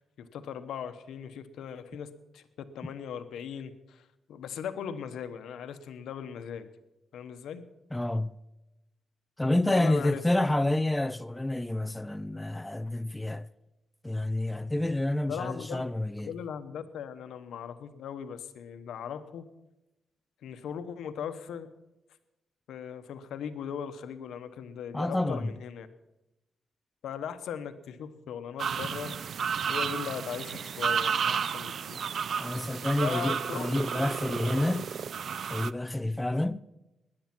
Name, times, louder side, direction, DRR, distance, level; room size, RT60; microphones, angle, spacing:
voice 1, 0.2-6.7 7.1-7.7 9.6-10.2 15.3-15.8 16.2-19.5 20.4-21.7 22.7-25.9 27.0-29.2 29.7-32.0 33.0-33.7, left 8 dB, 90° left, 1.0 m, -39 dB
voice 2, 7.9-8.4 9.4-13.5 14.0-16.3 24.9-25.5 32.4-34.9 35.5-36.6, left 1 dB, 10° left, 0.4 m, -29 dB
sound 1, 28.6-35.7, right 7 dB, 55° right, 0.5 m, -32 dB
18.0 x 10.5 x 6.0 m
cardioid pair, 120°, 0 cm